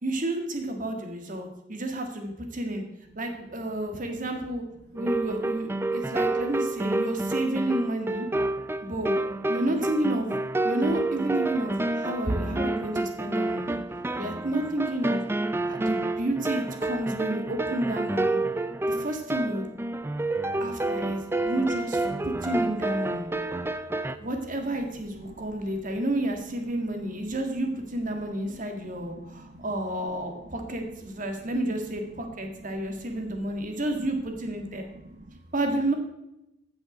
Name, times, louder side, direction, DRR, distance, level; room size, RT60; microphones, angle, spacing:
voice 1, 0.0-2.8 3.2-4.6 4.9-8.3 8.8-9.1 9.5-10.4 10.6-13.8 14.2-15.2 15.7-18.4 18.9-19.7 20.6-23.3 24.2-34.9 35.5-35.9, right 1 dB, 45° right, 4 dB, 1.8 m, -30 dB
voice 2, 3.6-4.0 12.3-12.4 14.1-14.2 15.5-15.7 18.6-18.7 20.4-20.6 21.0-21.5 22.1-22.2 23.1-23.7 24.6-26.0 26.5-27.4 28.1-29.6 30.0-31.7 32.1-34.0 34.6-35.4, right 1 dB, 65° right, 1 dB, 1.1 m, -43 dB
sound 1, 4.9-24.2, right 2 dB, 15° right, 0.4 m, -29 dB
15.0 x 6.2 x 5.0 m, 0.88 s
head